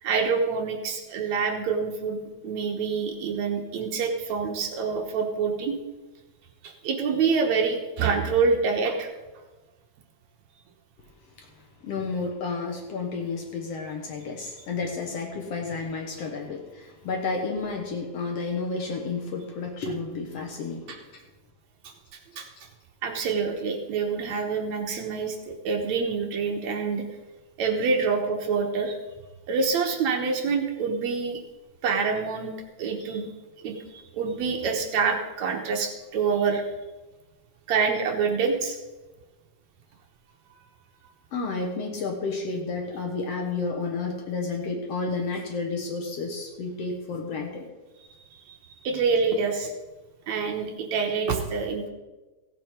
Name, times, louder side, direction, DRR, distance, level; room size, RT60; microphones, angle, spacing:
voice 1, 0.0-5.8 6.6-9.1 14.2-14.3 20.9-21.0 22.4-22.5 23.0-27.1 27.6-29.0 29.5-31.4 31.8-33.3 33.6-36.6 37.7-38.8 48.5-48.6 48.8-49.7 50.3-51.9, right 5 dB, 70° right, 3 dB, 2.1 m, -26 dB
voice 2, 11.8-21.0 41.3-47.7 49.3-49.4, left 4 dB, 60° left, 1 dB, 2.0 m, -31 dB
15.5 x 7.7 x 5.1 m, 1.2 s
omnidirectional pair, 3.7 m